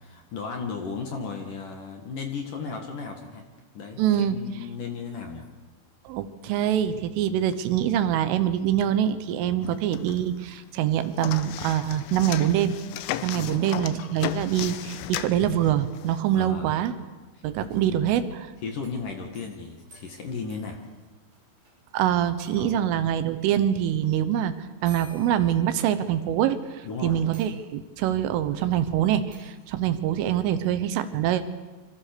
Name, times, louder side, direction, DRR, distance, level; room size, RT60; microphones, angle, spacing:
voice 1, 0.0-3.5 3.7-5.5 13.3-13.6 16.3-16.8 17.3-17.4 17.7-18.0 18.6-20.8 22.5-22.9 26.8-27.2, left 5 dB, 55° left, 3 dB, 2.8 m, -35 dB
voice 2, 4.0-4.4 6.1-12.8 13.2-16.9 17.4-18.5 21.9-31.4, right 10 dB, 80° right, 11 dB, 3.6 m, -25 dB
sound 1, 9.6-10.5 10.8-16.2, left 12 dB, 80° left, 3.4 m, -35 dB
sound 2, 18.7-21.7 22.0-22.1 22.4-23.0 24.0-24.1 24.8-26.3 26.8-26.9 27.3-28.0 29.3-29.6, right 3 dB, 35° right, 8.7 m, -52 dB
27.0 x 25.0 x 6.9 m, 1.2 s
omnidirectional pair, 5.8 m